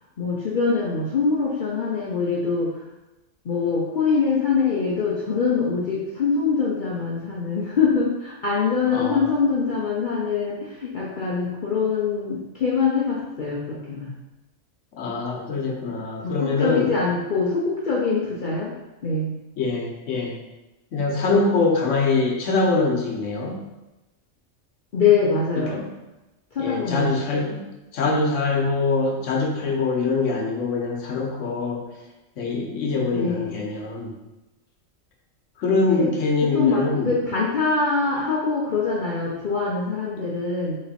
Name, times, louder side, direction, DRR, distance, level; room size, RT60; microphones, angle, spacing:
voice 1, 0.2-2.7 3.4-14.1 16.2-18.7 19.0-19.3 24.9-25.8 26.5-27.1 27.3-27.4 33.1-33.6 35.8-36.1 36.4-40.8, left 5 dB, 50° left, -5 dB, 0.7 m, -24 dB
voice 2, 8.9-9.2 14.9-16.9 19.6-20.4 20.9-23.6 25.7-25.8 26.6-27.6 27.9-31.8 32.4-34.1 35.6-37.2, left 3 dB, 70° left, 0 dB, 1.2 m, -23 dB
4.1 x 3.1 x 4.1 m, 1.0 s
omnidirectional pair, 1.4 m